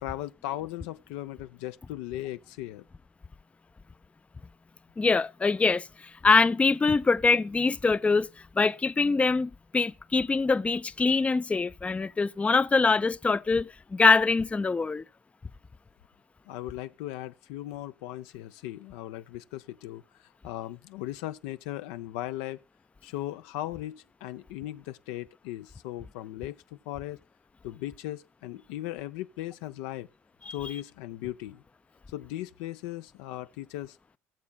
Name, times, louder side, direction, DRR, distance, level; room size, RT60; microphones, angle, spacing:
voice 1, 0.0-2.9 16.5-20.0 20.4-22.6 23.0-27.2 27.6-30.1 30.5-31.6 32.1-34.0, left 14 dB, 75° left, 0.5 m, -37 dB
voice 2, 5.0-8.3 8.6-15.0 30.5-30.6, left 4 dB, 15° left, 0.4 m, -24 dB
19.0 x 7.4 x 2.2 m
hypercardioid pair, 70°, 7 cm